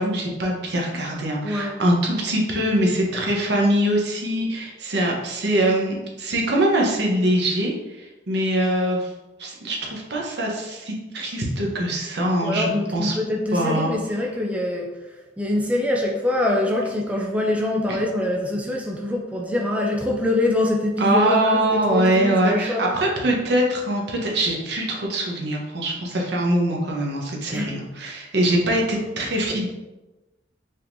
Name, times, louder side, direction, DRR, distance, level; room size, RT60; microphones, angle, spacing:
voice 1, 0.0-9.1 9.4-13.1 13.5-13.9 17.9-18.0 21.0-29.7, right 1 dB, 65° right, -1 dB, 1.0 m, -23 dB
voice 2, 1.4-1.8 12.4-14.9 15.4-21.6 21.9-23.0 27.5-27.7, left 1 dB, 10° right, 0 dB, 0.4 m, -24 dB
5.4 x 3.6 x 2.6 m, 1.1 s
head